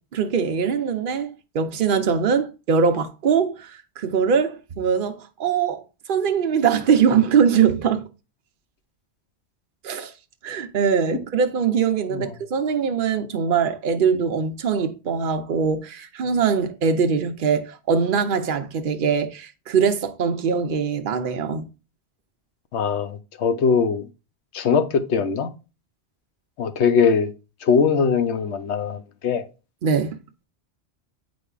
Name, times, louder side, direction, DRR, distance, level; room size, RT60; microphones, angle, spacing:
voice 1, 0.1-5.8 6.1-8.1 9.8-10.1 10.4-21.7 29.8-30.2, right 6 dB, 55° right, 0.8 m, -22 dB
voice 2, 22.7-24.1 24.5-25.5 26.6-27.3 27.6-29.4, left 6 dB, 85° left, 1.0 m, -21 dB
7.8 x 5.1 x 2.4 m
omnidirectional pair, 1.1 m